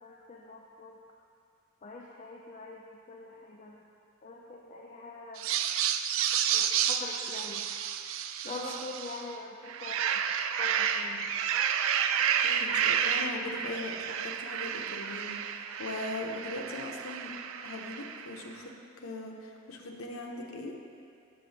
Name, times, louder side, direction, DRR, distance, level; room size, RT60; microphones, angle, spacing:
voice 1, 0.0-1.0 1.8-3.8 4.2-5.5 6.5-7.7 8.4-10.2 10.6-11.3, left 2 dB, 35° left, -2 dB, 0.4 m, -44 dB
sound 1, 5.4-9.3 9.7-18.3, right 8 dB, 75° right, 0.3 m, -31 dB
voice 2, 12.2-17.3 17.6-18.7 19.0-20.7, left 2 dB, 85° left, 1 dB, 0.8 m, -40 dB
6.8 x 6.2 x 4.0 m, 2.5 s
head